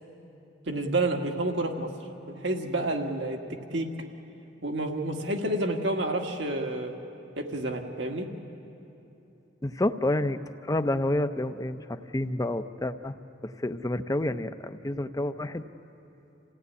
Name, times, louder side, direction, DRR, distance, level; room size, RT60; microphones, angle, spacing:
voice 1, 0.7-1.9 2.3-3.4 3.7-3.9 4.6-6.9 7.4-8.3, right 2 dB, 70° right, 3 dB, 1.8 m, -29 dB
voice 2, 9.6-13.2 13.4-15.7, left 1 dB, 20° left, 9 dB, 0.7 m, -29 dB
28.0 x 16.5 x 9.7 m, 3.0 s
head